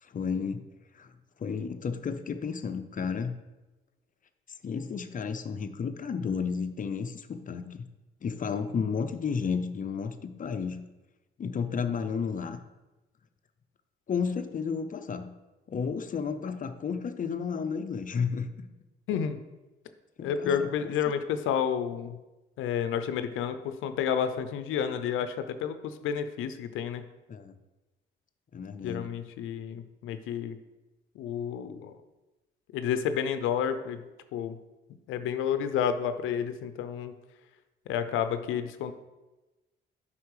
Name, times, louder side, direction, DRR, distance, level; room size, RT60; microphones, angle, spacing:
voice 1, 0.0-0.6 0.9-1.1 1.4-3.3 4.6-7.9 8.2-10.8 11.4-12.6 14.1-15.3 15.7-18.7 20.2-21.1 27.3-27.6 28.5-29.1, left 6 dB, 40° left, 8 dB, 0.6 m, -32 dB
voice 2, 19.1-19.4 20.2-22.2 22.6-27.0 28.8-30.6 31.2-32.0 32.7-34.0 34.3-34.6 35.1-37.1 37.9-38.9, left 8 dB, 90° left, 10 dB, 0.6 m, -30 dB
8.2 x 5.6 x 4.8 m, 1.1 s
cardioid pair, 90°, 20 cm